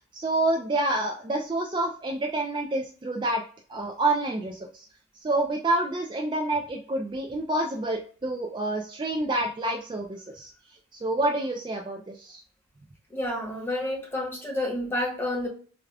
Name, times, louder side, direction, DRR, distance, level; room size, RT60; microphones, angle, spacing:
voice 1, 0.1-3.4 3.7-4.9 5.2-10.5 10.9-12.4, right 2 dB, 20° right, 1 dB, 0.3 m, -28 dB
voice 2, 13.1-15.5, left 1 dB, 10° left, -2 dB, 1.0 m, -29 dB
4.8 x 2.3 x 2.2 m, 0.42 s
head